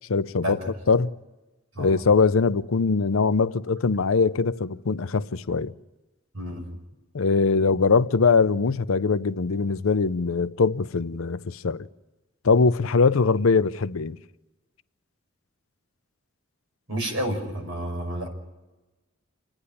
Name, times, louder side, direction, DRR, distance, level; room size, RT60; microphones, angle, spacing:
voice 1, 0.1-0.6 0.9-1.1 1.8-5.7 7.1-11.9 12.4-14.2, left 4 dB, 85° left, 0.6 m, -22 dB
voice 2, 6.3-6.6 16.9-18.3, equal, 75° right, 5.6 m, -30 dB
29.5 x 10.0 x 9.9 m
head